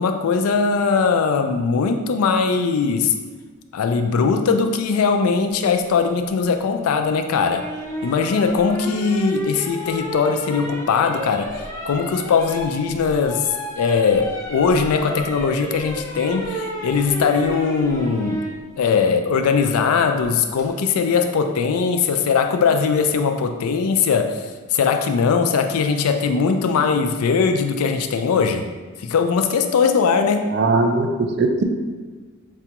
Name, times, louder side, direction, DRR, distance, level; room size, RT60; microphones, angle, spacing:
voice 1, 0.0-3.1 3.7-7.7 8.0-13.5 13.8-18.4 18.8-28.7 29.0-30.5, left 5 dB, 80° left, 6 dB, 0.3 m, -20 dB
sound 1, 7.4-18.6 20.2-20.6, equal, 10° left, 0.5 m, -32 dB
voice 2, 30.5-31.6, right 3 dB, 50° right, 5 dB, 0.3 m, -19 dB
4.8 x 2.3 x 2.8 m, 1.4 s
head